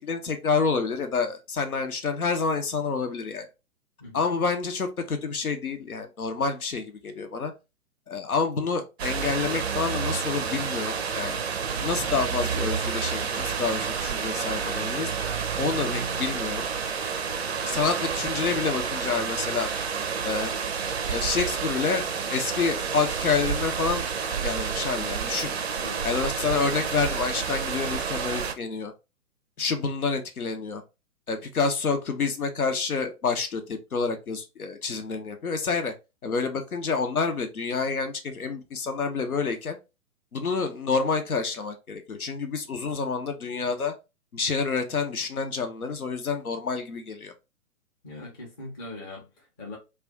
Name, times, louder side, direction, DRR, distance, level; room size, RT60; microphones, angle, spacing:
voice 1, 0.0-3.5 4.1-7.5 8.1-11.4 11.8-15.1 15.6-16.6 17.6-19.7 20.2-20.5 21.1-24.1 24.4-25.5 26.0-28.9 29.6-30.8 31.3-35.9 36.2-39.8 40.3-43.9 44.3-47.3, left 4 dB, 80° left, 0.7 m, -28 dB
sound 1, 9.0-28.5, right 6 dB, 50° right, 0.5 m, -29 dB
voice 2, 48.0-49.8, left 2 dB, 15° left, 0.5 m, -41 dB
2.4 x 2.2 x 3.6 m
figure-of-eight pair, 120°, 43 cm